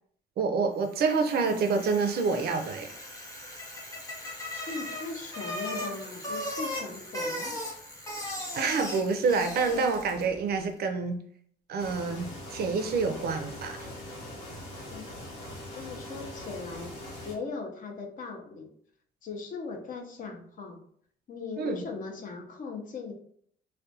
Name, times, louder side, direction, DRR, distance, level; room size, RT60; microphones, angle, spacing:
voice 1, 0.4-2.9 8.6-11.2 11.7-13.9 21.6-21.8, right 4 dB, 60° right, 6 dB, 0.4 m, -27 dB
Bicycle, 0.9-10.4, left 1 dB, 15° left, 0.8 m, -38 dB
voice 2, 4.7-7.6 14.9-15.1 15.7-18.7 19.2-20.8 21.3-23.1, left 4 dB, 45° left, 3 dB, 0.5 m, -39 dB
sound 1, 11.8-17.3, left 1 dB, 85° left, 0.9 m, -42 dB
2.4 x 2.1 x 2.6 m, 0.62 s
cardioid pair, 125°, 19 cm